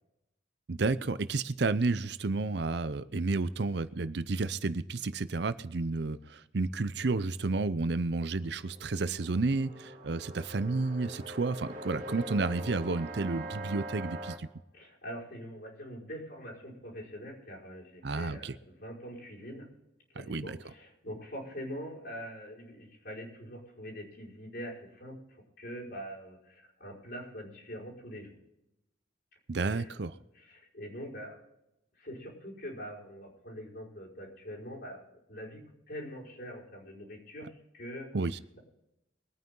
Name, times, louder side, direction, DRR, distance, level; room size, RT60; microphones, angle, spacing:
voice 1, 0.7-14.5 18.0-18.6 20.2-20.6 29.5-30.1 38.1-38.4, right 3 dB, 60° right, 14 dB, 0.6 m, -31 dB
sound 1, 8.4-14.4, right 1 dB, 40° right, 2.9 m, -43 dB
voice 2, 14.7-19.7 20.1-25.2 25.6-28.4 29.5-30.0 30.3-31.4 32.0-38.1, equal, 55° left, -4 dB, 5.3 m, -44 dB
23.0 x 9.3 x 3.8 m, 0.88 s
head